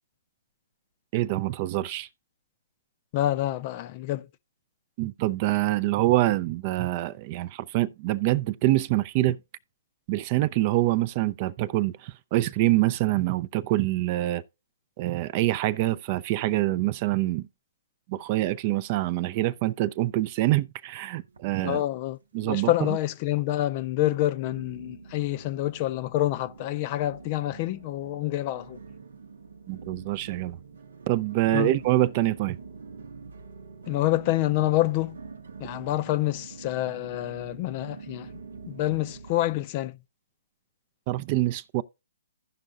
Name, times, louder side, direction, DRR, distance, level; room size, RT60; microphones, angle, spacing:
voice 1, 1.1-2.1 5.0-9.4 10.1-14.4 15.0-17.4 18.1-21.8 22.3-22.9 29.7-30.6 31.1-32.6 41.1-41.8, right 16 dB, 35° right, 0.4 m, -25 dB
voice 2, 3.1-4.3 21.6-22.2 22.4-28.8 31.5-31.7 33.9-35.2 35.6-38.3 38.7-40.0, left 15 dB, 35° left, 0.4 m, -27 dB
sound 1, 21.3-22.2 22.5-23.1 23.6-23.7 24.5-39.6, right 4 dB, 80° right, 0.8 m, -45 dB
16.0 x 5.3 x 2.4 m
hypercardioid pair, 140°, 0 cm